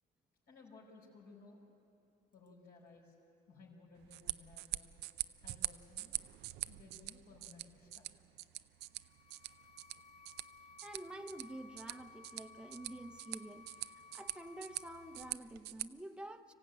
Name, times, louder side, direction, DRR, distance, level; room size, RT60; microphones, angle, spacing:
voice 1, 0.5-1.6 2.3-3.2 3.5-4.9 5.4-6.2 6.7-8.0, left 3 dB, 70° left, -4 dB, 5.0 m, -58 dB
sound 1, 4.0-15.9, right 16 dB, 85° right, 0.5 m, -45 dB
sound 2, 8.8-15.3, left 4 dB, 45° left, 0.9 m, -58 dB
voice 2, 10.8-13.7 14.1-16.5, right 1 dB, 5° right, 6 dB, 0.8 m, -48 dB
25.0 x 15.5 x 9.1 m, 2.7 s
cardioid pair, 110°, 17 cm